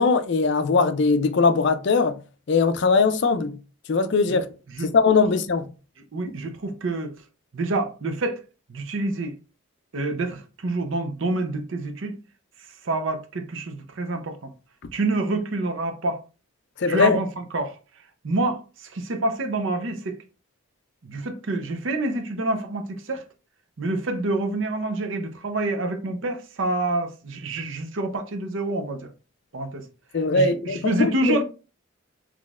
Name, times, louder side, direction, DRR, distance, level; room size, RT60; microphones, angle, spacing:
voice 1, 0.0-2.2 2.5-3.5 3.9-4.5 4.9-5.6 16.8-17.2 30.1-31.4, left 4 dB, 55° left, 0.4 m, -20 dB
voice 2, 6.1-7.1 7.5-8.4 8.7-9.3 9.9-12.1 12.8-14.5 14.9-16.2 16.9-17.8 18.2-20.2 21.0-23.2 23.8-29.1 29.5-29.9 30.3-31.4, right 2 dB, 60° right, 0.6 m, -27 dB
3.9 x 3.1 x 2.4 m
head